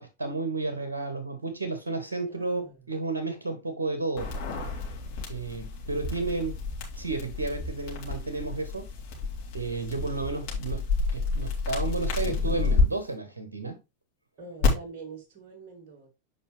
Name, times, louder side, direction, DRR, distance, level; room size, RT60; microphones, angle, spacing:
voice 1, 0.0-4.3 5.3-6.6 6.9-8.9 9.5-10.9 11.1-13.8, right 3 dB, 70° right, 1.4 m, -32 dB
voice 2, 2.2-2.8 9.8-10.2 14.4-16.1, right 4 dB, 45° right, 2.4 m, -45 dB
sound 1, 4.2-12.8 14.6-14.7, left 4 dB, 45° left, 3.5 m, -30 dB
8.5 x 5.4 x 3.2 m
figure-of-eight pair, 90°, 0 cm